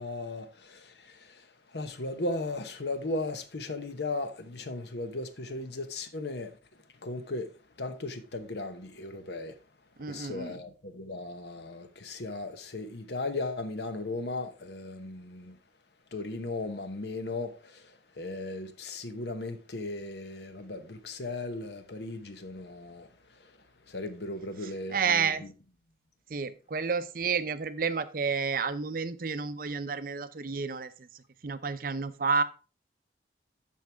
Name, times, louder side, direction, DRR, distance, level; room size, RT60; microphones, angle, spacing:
voice 1, 0.0-6.5 7.0-7.5 7.8-9.6 10.1-15.6 16.1-23.1 23.4-23.6 23.9-25.3, left 2 dB, 70° left, 1.0 m, -37 dB
voice 2, 10.0-10.6 24.6-25.4 26.3-32.4, right 5 dB, 50° right, 0.6 m, -31 dB
13.0 x 4.7 x 3.4 m
head